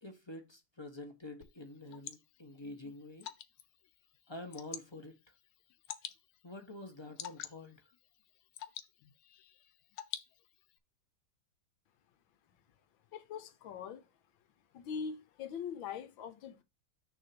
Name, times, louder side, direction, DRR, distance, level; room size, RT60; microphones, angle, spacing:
voice 1, 0.0-3.3 4.3-5.2 6.4-7.8, left 2 dB, 20° left, 0.8 m, -47 dB
Water / Drip, 1.4-10.8, left 11 dB, 90° left, 1.6 m, -50 dB
voice 2, 13.1-14.1 14.7-16.6, left 6 dB, 70° left, 1.5 m, -42 dB
6.5 x 3.6 x 5.9 m
omnidirectional pair, 2.3 m